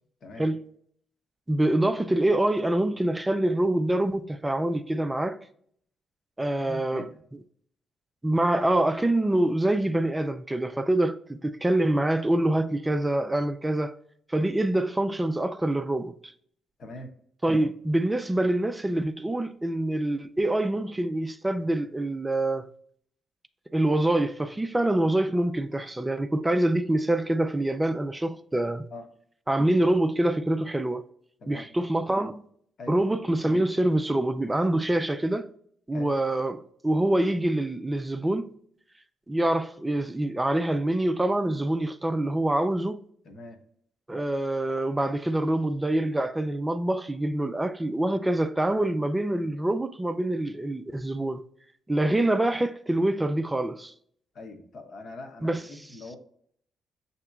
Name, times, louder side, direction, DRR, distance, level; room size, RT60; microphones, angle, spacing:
voice 1, 1.5-5.4 6.4-7.1 8.2-14.0 14.3-16.3 17.4-22.7 23.7-28.9 29.5-31.1 31.5-32.4 32.9-35.5 35.9-38.5 39.3-43.0 44.1-51.4 51.9-53.9 55.4-55.6, right 1 dB, 15° right, 0.4 m, -25 dB
voice 2, 6.6-7.2 16.8-17.1 28.9-29.1 31.4-31.7 32.8-33.0 35.9-36.1 43.2-43.6 54.3-56.2, left 2 dB, 55° left, 0.9 m, -42 dB
6.7 x 2.8 x 2.3 m
cardioid pair, 90°, 0 cm